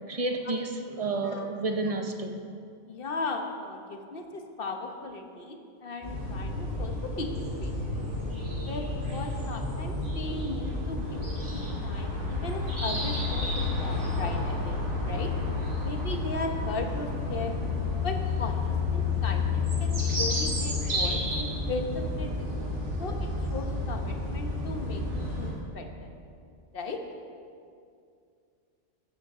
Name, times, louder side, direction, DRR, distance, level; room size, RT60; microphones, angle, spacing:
voice 1, 0.1-2.4, right 2 dB, 30° right, 5 dB, 1.0 m, -30 dB
voice 2, 2.9-7.3 7.6-8.1 8.6-11.2 11.5-15.3 15.8-17.5 18.0-22.5 23.0-26.1 26.7-27.0, left 3 dB, 50° left, 4 dB, 1.4 m, -37 dB
sound 1, 6.0-25.5, left 3 dB, 70° right, 3.0 m, -30 dB
15.0 x 14.0 x 3.8 m, 2.4 s
omnidirectional pair, 1.3 m